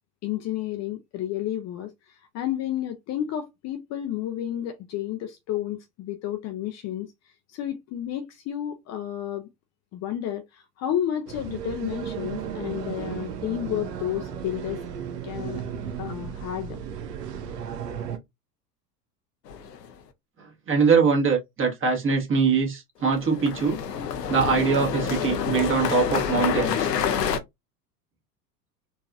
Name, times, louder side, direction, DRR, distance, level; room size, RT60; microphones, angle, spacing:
voice 1, 0.2-1.9 2.3-7.1 7.5-9.5 9.9-14.8 15.2-15.6 16.0-16.8, left 11 dB, 35° left, 0.6 m, -31 dB
sound 1, 11.3-18.2, right 8 dB, 75° right, 0.8 m, -34 dB
sound 2, 19.5-19.9 23.1-27.4, left 7 dB, 80° left, 0.7 m, -27 dB
voice 2, 20.7-23.8 24.3-26.9, right 5 dB, 25° right, 1.5 m, -22 dB
4.0 x 2.4 x 2.4 m
figure-of-eight pair, 80°, 48 cm